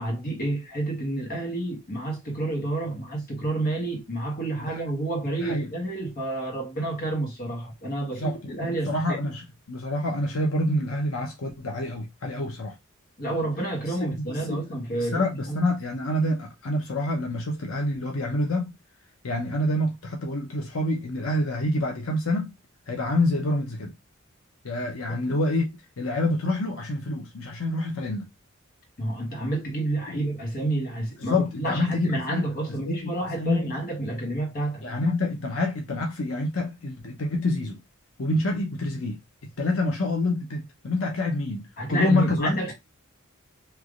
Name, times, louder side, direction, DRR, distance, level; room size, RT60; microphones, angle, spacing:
voice 1, 0.0-9.2 13.2-15.6 25.3-25.4 29.0-34.8 41.8-42.7, right 2 dB, 45° left, 1.4 m, -29 dB
voice 2, 5.4-5.7 8.1-12.7 14.1-14.7 15.0-18.7 19.2-22.6 22.9-23.9 24.6-28.3 30.1-30.2 31.2-33.8 34.8-37.8 38.2-42.6, left 1 dB, 85° left, 0.8 m, -27 dB
3.3 x 3.0 x 2.4 m
head